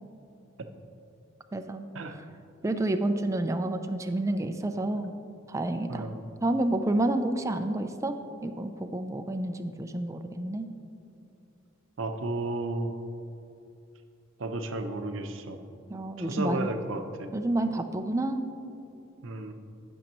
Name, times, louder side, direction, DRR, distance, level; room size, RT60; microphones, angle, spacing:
voice 1, 1.5-1.9 2.6-5.1 5.5-6.1 6.4-8.2 8.4-10.7 15.9-16.7 17.3-18.5, right 1 dB, 15° right, 7 dB, 0.4 m, -29 dB
voice 2, 5.9-6.2 12.0-13.0 14.4-15.6 16.2-17.3 19.2-19.5, right 2 dB, 70° right, 6 dB, 0.7 m, -33 dB
15.0 x 6.3 x 3.0 m, 2.8 s
head